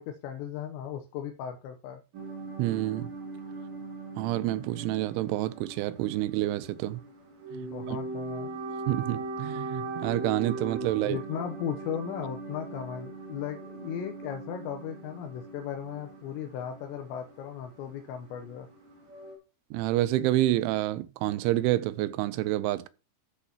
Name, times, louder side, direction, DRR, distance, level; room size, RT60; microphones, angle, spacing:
voice 1, 0.0-2.0 7.5-8.5 11.0-18.7, left 8 dB, 80° left, 2.9 m, -36 dB
sound 1, 2.1-19.4, right 3 dB, 45° right, 3.0 m, -40 dB
voice 2, 2.6-3.1 4.2-7.0 7.9-8.0 8.9-11.2 19.7-22.9, right 15 dB, 85° right, 3.1 m, -28 dB
13.0 x 7.2 x 2.9 m
omnidirectional pair, 5.4 m